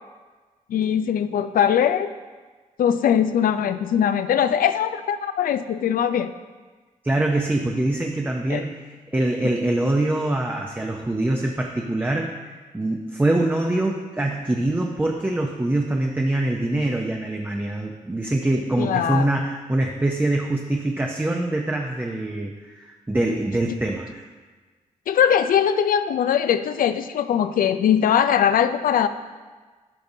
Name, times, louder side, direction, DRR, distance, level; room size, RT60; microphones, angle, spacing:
voice 1, 0.7-2.1 2.8-6.3 8.5-8.7 18.8-19.3 25.1-29.1, left 9 dB, 75° left, 12 dB, 0.4 m, -21 dB
voice 2, 7.0-8.7 9.1-12.3 12.7-24.3, right 1 dB, 15° right, 1 dB, 0.6 m, -24 dB
12.0 x 5.3 x 2.7 m, 1.4 s
cardioid pair, 85°, 15 cm